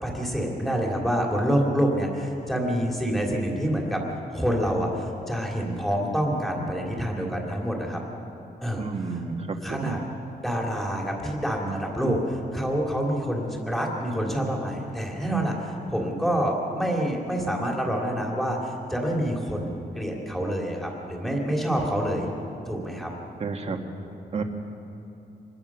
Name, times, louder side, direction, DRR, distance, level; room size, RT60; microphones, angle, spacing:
voice 1, 0.0-4.0 4.3-8.0 8.6-9.2 9.6-10.0 10.4-22.3 22.7-23.1, equal, ahead, -2 dB, 3.0 m, -27 dB
voice 2, 8.8-10.1 23.4-23.8 24.3-24.4, right 4 dB, 40° right, 4 dB, 1.7 m, -31 dB
26.0 x 20.5 x 6.2 m, 2.9 s
wide cardioid pair, 175°, 17 cm